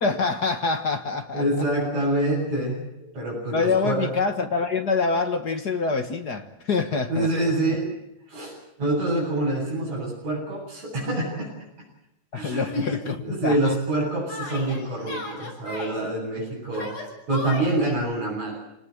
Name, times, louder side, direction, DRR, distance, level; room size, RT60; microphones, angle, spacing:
voice 1, 0.0-1.4 3.5-7.3 12.3-13.7, left 4 dB, 50° left, 7 dB, 1.3 m, -25 dB
voice 2, 1.3-4.1 7.1-7.9 8.3-11.5 12.3-16.9 17.3-18.6, right 1 dB, 55° right, -6 dB, 9.3 m, -26 dB
Yell, 12.7-13.0 14.3-16.0 16.7-18.0, left 2 dB, 75° left, 7.9 m, -36 dB
28.0 x 19.0 x 8.0 m, 0.84 s
omnidirectional pair, 3.6 m